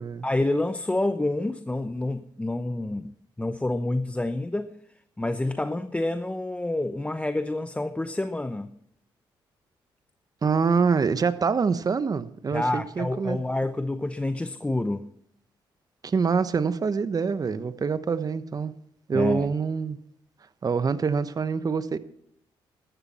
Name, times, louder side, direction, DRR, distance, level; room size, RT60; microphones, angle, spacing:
voice 1, 0.2-3.1 3.4-4.7 5.2-8.7 12.5-15.1 19.1-19.5, left 2 dB, 15° left, 0.8 m, -28 dB
voice 2, 10.4-13.4 16.0-18.8 19.1-20.0 20.6-22.0, right 5 dB, 40° right, 1.0 m, -25 dB
14.0 x 13.0 x 4.3 m
cardioid pair, 70°, 9 cm